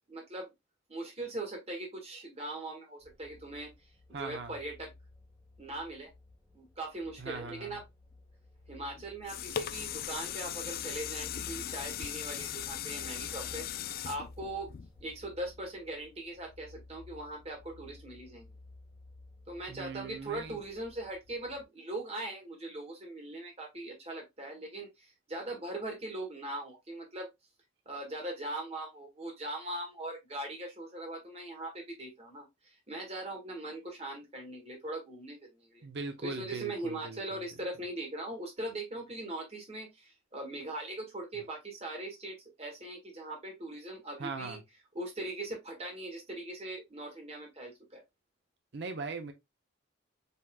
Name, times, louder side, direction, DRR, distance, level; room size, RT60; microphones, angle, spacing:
voice 1, 0.1-0.5 0.9-3.7 4.2-4.9 5.6-6.1 6.5-7.8 8.7-14.7 15.0-18.5 19.5-27.3 27.8-35.9 36.2-44.6 44.9-48.0, right 2 dB, 30° right, 1.7 m, -40 dB
sound 1, 3.0-21.6, left 2 dB, 5° right, 1.2 m, -54 dB
voice 2, 4.1-4.5 7.2-7.8 19.7-20.6 35.8-37.4 44.2-44.6 48.7-49.3, right 4 dB, 60° right, 0.7 m, -40 dB
sound 2, 9.0-15.3 15.8-15.9, left 10 dB, 50° left, 0.3 m, -38 dB
5.5 x 3.0 x 2.2 m
head